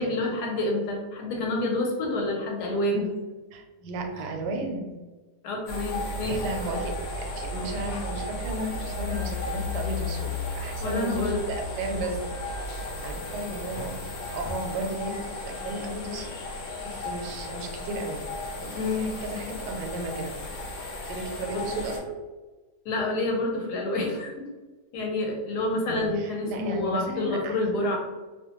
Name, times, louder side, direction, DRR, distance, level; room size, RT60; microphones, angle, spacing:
voice 1, 0.0-3.1 5.4-6.4 10.8-11.4 18.7-19.1 21.5-21.6 22.8-24.5 24.9-28.0, left 2 dB, 85° left, 1 dB, 1.2 m, -28 dB
voice 2, 3.5-4.9 6.3-12.2 12.5-16.3 16.8-18.2 18.5-20.3 21.0-22.2 25.9-27.9, right 2 dB, 90° right, 3 dB, 1.2 m, -34 dB
sound 1, 5.7-22.0, left 2 dB, 65° left, 1.0 m, -34 dB
2.8 x 2.1 x 2.9 m, 1.2 s
omnidirectional pair, 1.7 m